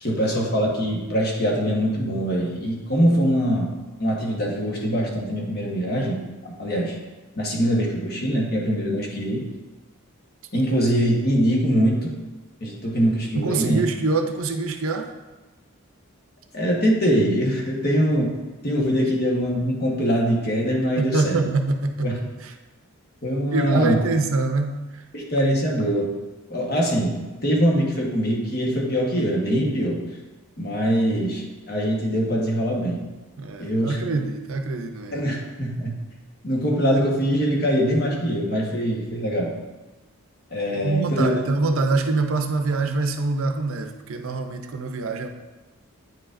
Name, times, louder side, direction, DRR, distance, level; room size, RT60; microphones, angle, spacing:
voice 1, 0.0-3.7 4.0-6.9 7.4-9.5 10.5-12.1 12.6-13.8 16.5-18.3 18.6-21.4 22.0-22.2 23.2-24.0 25.1-26.1 26.5-30.0 30.6-33.0 33.6-34.0 35.1-35.9 36.4-39.5 40.5-41.3, equal, 45° left, -2 dB, 1.2 m, -23 dB
voice 2, 13.4-15.1 21.0-22.2 22.4-22.5 23.5-24.8 33.4-35.2 40.8-45.3, right 3 dB, 70° right, 6 dB, 0.5 m, -24 dB
9.2 x 4.8 x 2.5 m, 1.2 s
head